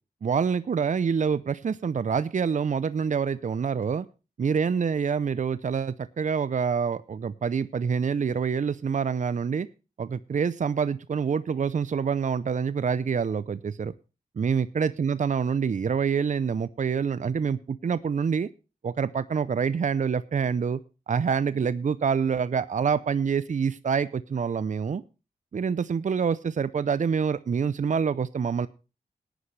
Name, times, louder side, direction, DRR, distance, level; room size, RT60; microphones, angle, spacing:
voice 1, 0.2-4.1 4.4-9.7 10.0-13.9 14.4-18.5 18.8-20.8 21.1-25.0 25.5-28.7, right 6 dB, 50° right, 16 dB, 0.6 m, -26 dB
18.0 x 10.0 x 3.2 m, 0.31 s
cardioid pair, 50°, 16 cm